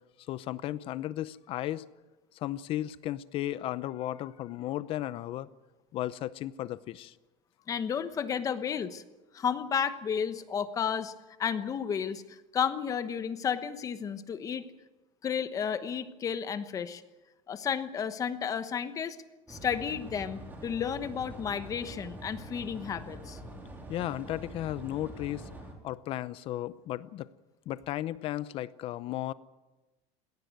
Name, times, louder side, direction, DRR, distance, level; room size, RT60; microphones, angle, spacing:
voice 1, 0.3-1.9 2.3-5.5 5.9-7.1 23.9-25.5 25.8-27.3 27.7-29.3, left 14 dB, 40° left, 17 dB, 0.7 m, -35 dB
voice 2, 7.7-9.0 9.3-11.1 11.4-14.7 15.2-17.0 17.5-19.2 19.5-23.4, left 7 dB, 25° left, 12 dB, 1.1 m, -32 dB
sound 1, 19.5-25.7, right 1 dB, 15° right, 3.7 m, -45 dB
19.5 x 17.5 x 9.4 m, 1.1 s
cardioid pair, 165°, 15 cm